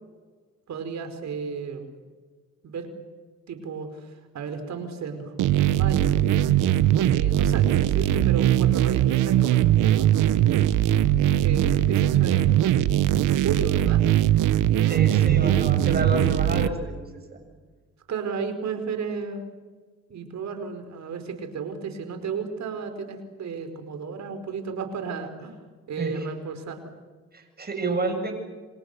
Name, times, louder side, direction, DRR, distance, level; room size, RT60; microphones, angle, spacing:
voice 1, 0.7-1.9 2.6-2.9 3.5-6.3 7.1-10.1 11.4-12.9 13.2-14.0 14.9-15.5 18.1-19.4 20.1-25.6 25.9-26.9, right 5 dB, 65° right, 8 dB, 4.8 m, -33 dB
sound 1, 5.4-16.7, right 12 dB, 85° right, 1.2 m, -20 dB
voice 2, 14.9-17.0 17.3-17.4 26.0-26.3 27.3-28.3, right 3 dB, 30° right, 5 dB, 7.7 m, -29 dB
28.5 x 26.5 x 6.9 m, 1.4 s
cardioid pair, 90°, 30 cm